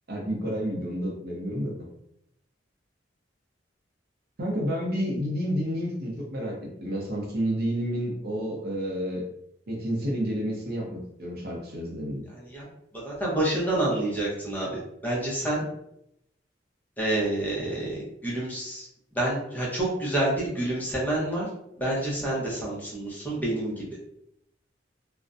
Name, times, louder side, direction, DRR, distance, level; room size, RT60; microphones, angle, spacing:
voice 1, 0.1-1.9 4.4-9.2 9.7-12.2, equal, 55° right, -1 dB, 0.6 m, -30 dB
voice 2, 12.3-12.7 12.9-15.6 17.0-18.9 19.1-21.5 21.8-23.9, right 1 dB, 10° left, -6 dB, 0.7 m, -28 dB
2.4 x 2.1 x 2.5 m, 0.77 s
head